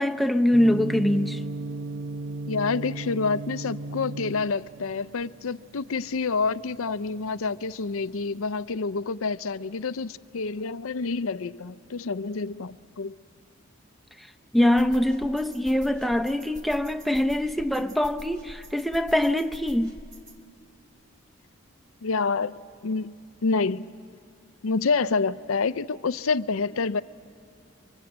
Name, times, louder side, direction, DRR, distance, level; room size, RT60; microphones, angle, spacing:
voice 1, 0.0-1.4 14.2-14.3 14.5-19.9, left 1 dB, ahead, 0.6 m, -23 dB
Gong, 0.5-8.6, right 2 dB, 60° right, 0.9 m, -36 dB
voice 2, 2.5-13.1 22.0-23.2 23.4-23.9 24.6-27.0, left 4 dB, 80° left, 0.6 m, -28 dB
sound 1, 14.8-20.4, right 1 dB, 20° right, 1.9 m, -45 dB
30.0 x 23.5 x 8.0 m
head